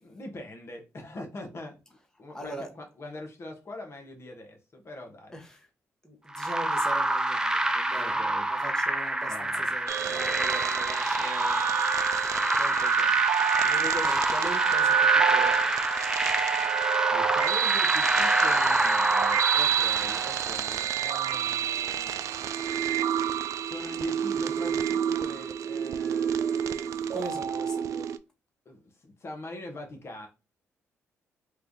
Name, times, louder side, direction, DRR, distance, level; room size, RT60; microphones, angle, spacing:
voice 1, 0.0-1.8 2.2-5.4 7.9-8.5 9.2-9.7 10.0-10.5 17.1-22.1 23.6-27.2 28.6-30.3, left 2 dB, 45° left, 1.2 m, -43 dB
voice 2, 2.3-2.7 5.3-5.7 6.0-11.7 12.5-13.2 13.6-15.9 27.1-28.1, equal, 10° left, 1.1 m, -41 dB
sound 1, 6.3-20.7, right 1 dB, 10° right, 0.6 m, -27 dB
sound 2, 9.9-28.2, right 9 dB, 65° right, 0.3 m, -28 dB
3.2 x 2.5 x 3.6 m
supercardioid pair, 65°, 6 cm